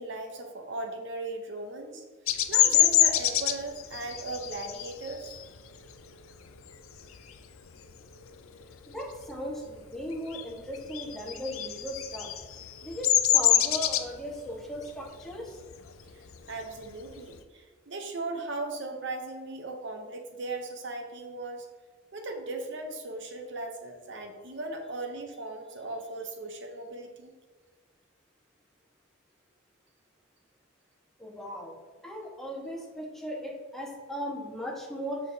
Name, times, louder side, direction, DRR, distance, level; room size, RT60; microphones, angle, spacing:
voice 1, 0.0-2.0 2.5-5.4 16.1-21.7 22.1-27.3, right 2 dB, 60° right, 4 dB, 0.8 m, -38 dB
Bird vocalization bird call bird song, 2.3-7.5 7.9-8.2 8.5-9.8 10.0-17.4, left 11 dB, 90° left, 0.5 m, -26 dB
voice 2, 8.9-12.3 12.8-15.6 31.2-31.7 32.0-35.2, equal, ahead, -4 dB, 1.3 m, -37 dB
7.2 x 6.2 x 2.8 m, 1.4 s
head